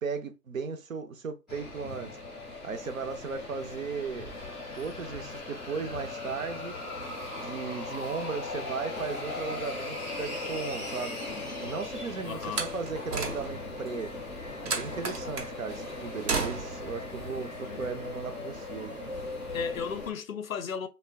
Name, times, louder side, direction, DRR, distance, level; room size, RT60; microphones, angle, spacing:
voice 1, 0.0-2.1 2.6-4.3 4.8-6.7 7.3-11.2 11.6-14.2 14.6-19.0, right 5 dB, 60° right, 0.5 m, -36 dB
sound 1, 1.5-20.1, left 2 dB, ahead, 0.4 m, -38 dB
voice 2, 12.2-12.7 17.6-18.0 19.5-20.9, left 6 dB, 60° left, 0.5 m, -35 dB
Slam, 12.4-13.8 14.7-15.5 16.3-16.9, right 4 dB, 80° right, 0.9 m, -33 dB
2.2 x 2.1 x 3.4 m
figure-of-eight pair, 160°, 47 cm